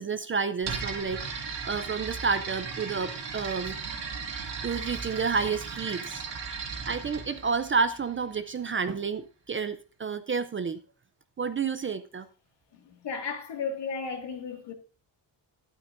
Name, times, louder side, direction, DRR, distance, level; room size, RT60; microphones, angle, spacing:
voice 1, 0.0-3.8 4.4-6.3 6.9-10.8 11.4-12.3, right 5 dB, 30° right, 0.5 m, -30 dB
sound 1, 0.6-8.4, right 5 dB, 65° right, 2.4 m, -36 dB
voice 2, 12.9-14.7, left 5 dB, 65° left, 2.2 m, -34 dB
12.5 x 11.5 x 2.6 m
wide cardioid pair, 180°, 45 cm